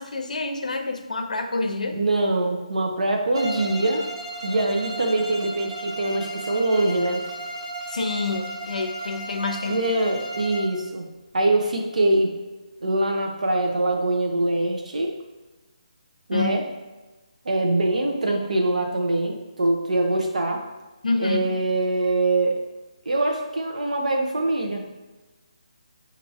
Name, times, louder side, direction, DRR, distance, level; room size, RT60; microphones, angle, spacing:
voice 1, 0.0-2.0 7.9-9.9 16.3-16.5 21.0-21.5, left 3 dB, 80° left, 6 dB, 0.5 m, -27 dB
voice 2, 1.9-4.0 4.4-7.2 9.7-11.1 11.3-12.3 12.8-15.1 16.3-16.6 17.4-20.6 21.2-22.6 23.1-24.8, right 2 dB, 75° right, 2 dB, 0.7 m, -23 dB
Bowed string instrument, 3.3-10.8, right 1 dB, 40° right, 0.6 m, -35 dB
4.4 x 2.6 x 2.7 m, 1.1 s
hypercardioid pair, 170°, 4 cm